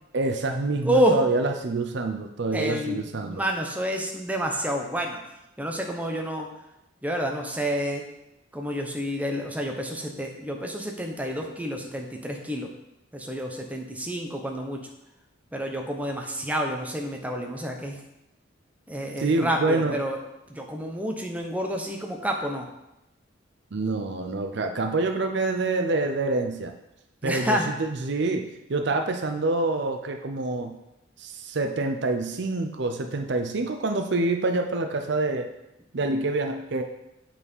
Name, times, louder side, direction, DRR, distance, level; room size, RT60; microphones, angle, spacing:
voice 1, 0.1-3.4 19.2-20.0 23.7-26.7 27.2-30.8 31.2-35.5 35.9-36.8, right 2 dB, 60° right, 6 dB, 0.6 m, -26 dB
voice 2, 0.8-1.2 2.5-5.2 5.6-6.5 7.0-8.0 8.5-12.7 13.1-14.8 15.5-18.0 18.9-20.2 20.5-22.7 27.2-27.7, equal, 10° right, 1 dB, 0.8 m, -29 dB
8.3 x 4.2 x 5.5 m, 0.90 s
head